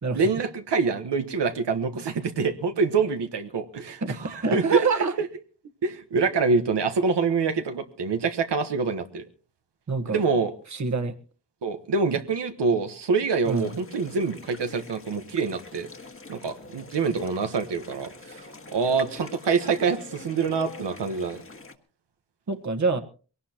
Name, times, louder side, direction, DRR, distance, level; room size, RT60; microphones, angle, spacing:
voice 1, 0.1-5.3 5.8-9.2 10.1-10.5 11.6-15.9 16.3-21.4, right 4 dB, 85° right, 7 dB, 1.4 m, -26 dB
voice 2, 4.0-5.1 9.9-10.2 10.7-11.1 13.5-13.7 22.5-23.0, right 4 dB, 45° right, 8 dB, 1.4 m, -26 dB
sound 1, 13.4-21.7, left 3 dB, 30° left, 1.7 m, -44 dB
22.0 x 18.5 x 3.0 m, 0.38 s
cardioid pair, 70°, 41 cm